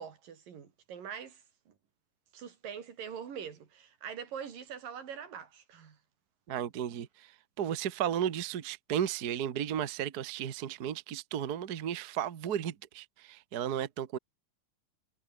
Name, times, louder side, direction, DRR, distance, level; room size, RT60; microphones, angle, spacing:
voice 1, 0.0-1.4 1.7-1.8 2.3-6.0, right 7 dB, 80° right, 4.7 m, -43 dB
voice 2, 6.5-7.1 7.6-14.2, right 9 dB, 60° right, 0.9 m, -34 dB
omnidirectional pair, 3.8 m